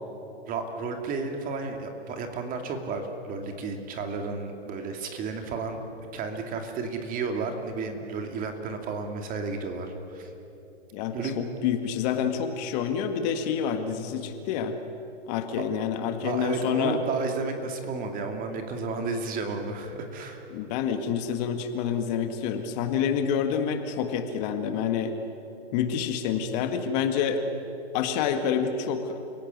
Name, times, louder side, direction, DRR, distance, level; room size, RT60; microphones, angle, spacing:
voice 1, 0.5-5.8 6.1-10.3 11.1-11.4 16.2-20.4, right 4 dB, 25° right, 5 dB, 2.7 m, -32 dB
voice 2, 10.9-14.7 15.3-17.0 20.5-25.1 25.7-27.4 27.9-29.2, left 7 dB, 35° left, 7 dB, 1.9 m, -28 dB
29.5 x 17.5 x 9.5 m, 2.9 s
hypercardioid pair, 135°, 34 cm